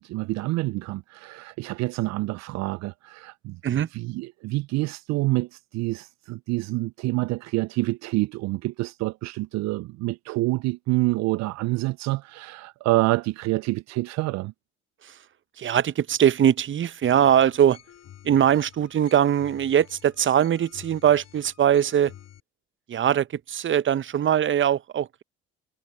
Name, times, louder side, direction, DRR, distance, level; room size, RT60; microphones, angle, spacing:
voice 1, 0.0-14.5, right 21 dB, 65° right, 0.5 m, -27 dB
voice 2, 15.6-17.8 18.2-22.1 22.9-25.2, right 9 dB, 40° right, 0.8 m, -21 dB
sound 1, 17.0-22.4, left 11 dB, 60° left, 6.7 m, -50 dB
hypercardioid pair, 50°, 30 cm